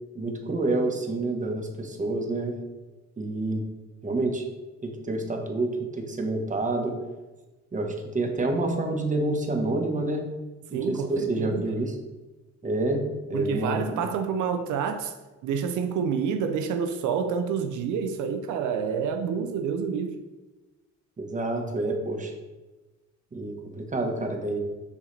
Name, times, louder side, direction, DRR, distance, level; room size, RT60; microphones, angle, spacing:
voice 1, 0.1-2.6 3.2-3.6 4.0-4.5 4.8-7.0 7.7-10.3 10.7-11.9 12.6-13.0 13.3-14.0 21.2-22.3 23.3-24.6, right 2 dB, 25° right, 1.2 m, -28 dB
voice 2, 10.7-11.8 13.3-15.1 15.4-20.2, right 6 dB, 80° right, 0.6 m, -28 dB
6.9 x 4.8 x 3.3 m
cardioid pair, 90°, 30 cm